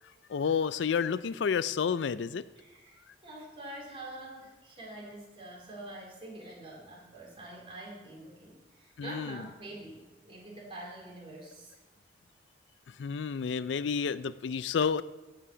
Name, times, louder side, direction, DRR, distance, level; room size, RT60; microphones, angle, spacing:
voice 1, 0.3-2.4 9.0-9.4 13.0-15.0, left 6 dB, 85° left, 16 dB, 0.4 m, -30 dB
voice 2, 2.6-11.8, right 1 dB, 30° right, -3 dB, 3.9 m, -46 dB
16.5 x 5.8 x 6.1 m, 1.2 s
head